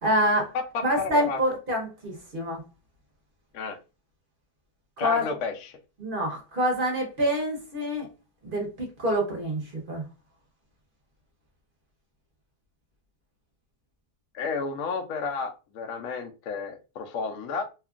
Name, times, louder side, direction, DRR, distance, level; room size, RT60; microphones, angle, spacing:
voice 1, 0.0-0.5 0.8-2.6 5.0-5.2 6.0-8.1 8.4-9.6 9.9-10.0, equal, 45° right, 0 dB, 0.9 m, -26 dB
voice 2, 0.5-1.4 3.5-3.8 5.0-5.8 14.3-17.6, left 5 dB, 70° left, 4 dB, 0.9 m, -32 dB
2.8 x 2.4 x 2.3 m, 0.30 s
omnidirectional pair, 1.7 m